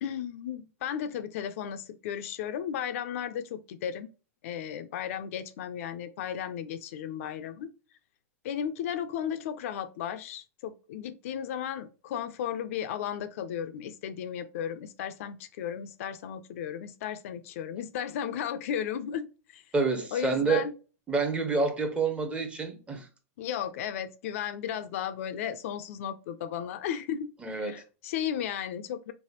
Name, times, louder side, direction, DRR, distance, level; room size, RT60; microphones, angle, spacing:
voice 1, 0.0-4.1 4.4-7.7 8.4-19.3 19.5-19.6 20.1-20.7 23.4-29.1, left 9 dB, 65° left, 0.4 m, -35 dB
voice 2, 19.7-20.7 21.1-23.1 27.4-27.8, right 4 dB, 15° right, 0.6 m, -28 dB
3.3 x 2.1 x 2.8 m
hypercardioid pair, 125°, 8 cm